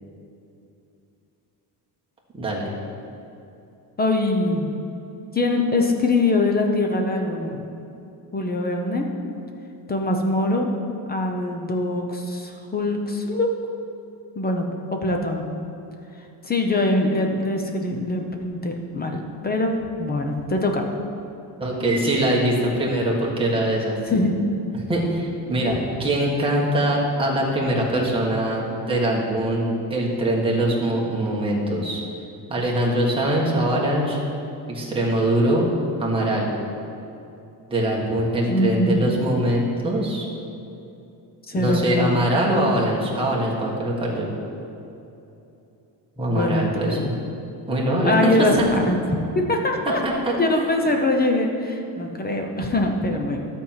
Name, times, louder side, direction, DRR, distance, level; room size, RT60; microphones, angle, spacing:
voice 1, 2.4-2.7 21.6-24.0 24.7-32.0 32.5-34.2 34.7-35.7 36.0-36.5 37.7-40.3 41.5-44.3 46.2-47.1 47.7-48.7 50.0-50.1, right 1 dB, 10° right, -4 dB, 1.6 m, -22 dB
voice 2, 4.0-4.7 5.3-7.6 8.3-9.1 9.9-10.7 11.1-13.5 14.3-14.7 14.9-15.5 16.4-20.8 24.1-24.4 38.4-39.1 41.5-42.2 42.5-42.8 46.3-47.1 48.0-48.5 48.9-53.4, left 2 dB, 20° left, 2 dB, 0.7 m, -23 dB
12.5 x 4.5 x 7.4 m, 2.8 s
cardioid pair, 165°, 42 cm